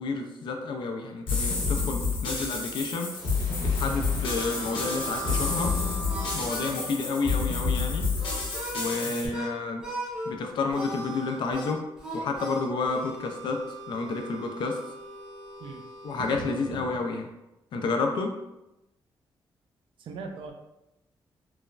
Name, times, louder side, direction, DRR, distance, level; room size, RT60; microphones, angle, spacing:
voice 1, 0.0-3.1 3.6-5.8 6.3-8.1 8.7-9.9 10.3-11.9 12.1-14.8 16.0-17.3 17.7-18.4, left 3 dB, 70° left, 4 dB, 0.4 m, -30 dB
sound 1, 1.3-9.3, left 4 dB, 90° left, 0.8 m, -29 dB
sound 2, 2.8-8.3, right 1 dB, 45° right, 0.7 m, -45 dB
Harmonica, 3.7-9.5 9.8-10.3 10.7-16.7, right 1 dB, 10° right, 0.8 m, -39 dB
voice 2, 6.6-6.9 9.0-9.3 15.6-15.8 16.2-16.4 16.7-16.8 20.0-20.5, right 5 dB, 80° right, 4 dB, 0.4 m, -41 dB
3.1 x 2.0 x 2.4 m, 0.92 s
wide cardioid pair, 160°, 8 cm